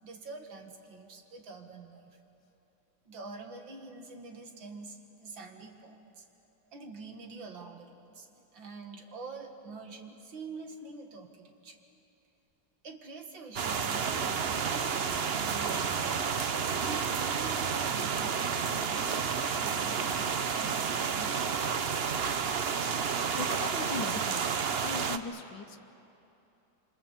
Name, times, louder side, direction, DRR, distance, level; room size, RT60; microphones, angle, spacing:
voice 1, 0.0-2.2 3.1-6.2 6.7-11.8 12.8-16.2 16.8-21.6, right 3 dB, 75° right, 4 dB, 2.6 m, -46 dB
sound 1, 13.6-25.2, right 6 dB, 50° right, 0.7 m, -30 dB
voice 2, 23.3-25.8, left 5 dB, 75° left, 8 dB, 1.7 m, -39 dB
27.0 x 26.0 x 7.4 m, 2.9 s
omnidirectional pair, 2.1 m